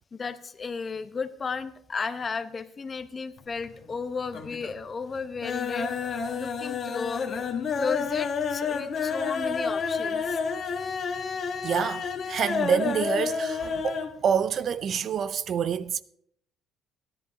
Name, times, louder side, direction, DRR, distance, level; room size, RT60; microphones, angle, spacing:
voice 1, 0.1-7.2 7.7-10.4, left 5 dB, 30° left, 0.8 m, -34 dB
sound 1, 3.4-4.0 4.3-4.8 5.1-14.2 14.4-14.5 14.8-14.9, left 5 dB, 45° left, 1.5 m, -30 dB
voice 2, 11.6-16.0, right 7 dB, 50° right, 0.5 m, -27 dB
14.0 x 11.0 x 4.7 m
cardioid pair, 115°, 0 cm